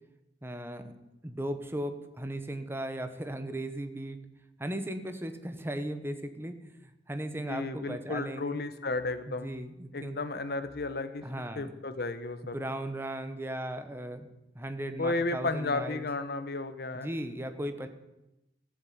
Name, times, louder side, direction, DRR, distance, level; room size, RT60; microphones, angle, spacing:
voice 1, 0.4-0.9 1.2-4.2 4.6-6.5 7.1-8.6 9.3-10.2 11.2-11.7 12.4-14.3 14.5-16.0 16.9-17.9, right 1 dB, 15° right, 8 dB, 1.0 m, -37 dB
voice 2, 7.5-9.5 9.9-11.2 11.6-12.6 15.0-17.1, left 3 dB, 60° left, 11 dB, 1.0 m, -33 dB
14.0 x 7.5 x 8.6 m, 0.93 s
head